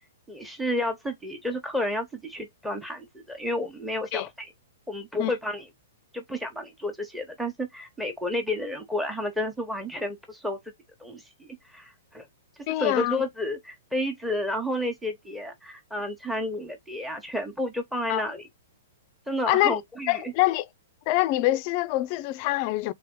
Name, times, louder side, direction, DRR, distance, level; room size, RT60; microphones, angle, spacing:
voice 1, 0.3-4.5 4.9-5.7 6.1-10.6 11.0-12.2 12.8-18.4 19.3-20.3, left 1 dB, 5° right, 1.0 m, -31 dB
voice 2, 12.7-13.2 18.1-18.2 19.5-19.8 20.1-20.7 21.1-22.9, left 17 dB, 45° left, 0.4 m, -25 dB
3.3 x 3.3 x 3.6 m
hypercardioid pair, 125°, 0 cm